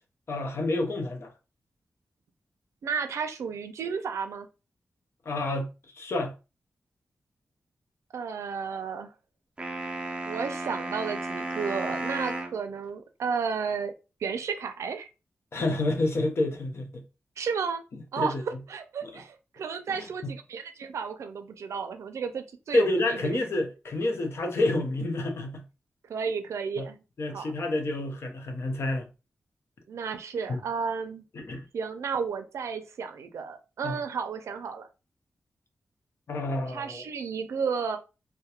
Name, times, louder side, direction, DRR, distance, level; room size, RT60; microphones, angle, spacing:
voice 1, 0.3-1.3 5.3-5.7 6.0-6.3 15.5-17.0 18.2-18.4 19.0-19.1 22.7-25.6 26.8-26.9 27.2-29.1 30.5-30.6 31.3-31.6 33.8-34.0 36.3-37.0, left 2 dB, 60° left, 0.6 m, -28 dB
voice 2, 2.8-4.5 8.1-9.1 10.2-13.9 14.2-15.1 17.4-17.8 18.1-23.4 26.1-27.0 27.3-27.5 29.9-31.2 31.7-34.9 36.7-38.0, right 6 dB, 90° right, 0.4 m, -33 dB
sound 1, 9.6-12.6, right 2 dB, 20° right, 0.5 m, -33 dB
2.3 x 2.1 x 2.8 m
wide cardioid pair, 85°, 5 cm